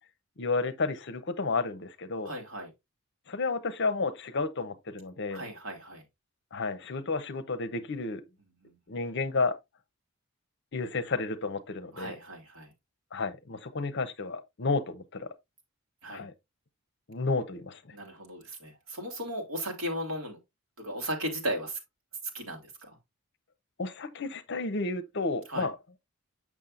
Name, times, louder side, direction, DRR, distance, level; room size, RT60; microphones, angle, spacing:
voice 1, 0.4-2.3 3.3-5.4 6.5-8.2 8.9-9.6 10.7-12.2 13.1-15.3 16.1-16.3 17.1-17.8 23.8-25.8, left 3 dB, 55° left, 0.7 m, -31 dB
voice 2, 2.2-2.7 5.3-6.0 8.6-8.7 11.9-12.7 16.0-16.2 17.9-20.4 20.8-21.8 22.3-23.0 25.5-25.7, equal, 70° right, 2.4 m, -36 dB
7.2 x 6.3 x 2.5 m
head